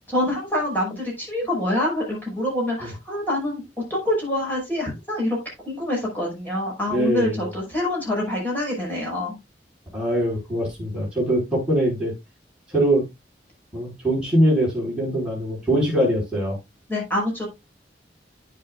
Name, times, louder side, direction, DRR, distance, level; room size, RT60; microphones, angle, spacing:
voice 1, 0.0-3.6 3.9-5.4 5.7-9.4 16.9-17.5, left 1 dB, 10° left, -3 dB, 5.4 m, -26 dB
voice 2, 6.9-7.4 9.9-12.1 12.7-13.0 13.7-16.6, right 1 dB, 5° right, -5 dB, 5.2 m, -22 dB
9.9 x 8.8 x 2.4 m, 0.21 s
head